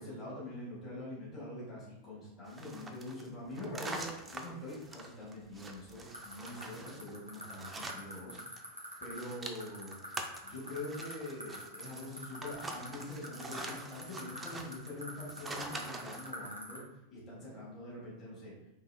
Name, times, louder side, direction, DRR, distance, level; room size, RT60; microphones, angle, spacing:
voice 1, 0.0-10.0 10.4-16.8 17.1-18.5, left 1 dB, 40° left, -7 dB, 1.3 m, -44 dB
sound 1, 2.5-8.6 8.9-16.3, right 2 dB, 15° right, 0.3 m, -45 dB
sound 2, 6.1-16.8, equal, 90° left, 0.7 m, -44 dB
3.5 x 2.5 x 2.2 m, 0.84 s
figure-of-eight pair, 90°, 0 cm